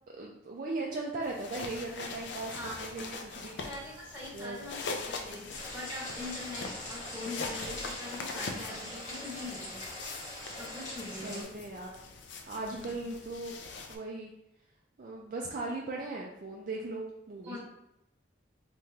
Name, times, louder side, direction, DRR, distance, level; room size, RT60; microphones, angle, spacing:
voice 1, 0.1-3.6 4.3-4.6 11.2-12.1 12.5-14.3 15.0-17.6, right 2 dB, 45° right, -2 dB, 0.4 m, -38 dB
sound 1, 1.2-14.0, left 4 dB, 65° left, 0.4 m, -42 dB
voice 2, 3.6-5.5 5.7-9.8 10.6-11.4 12.7-13.0 17.4-17.6, left 2 dB, 10° right, -7 dB, 1.2 m, -43 dB
sound 2, 5.5-11.4, left 1 dB, 40° left, 1.1 m, -42 dB
3.5 x 3.0 x 2.8 m, 0.85 s
head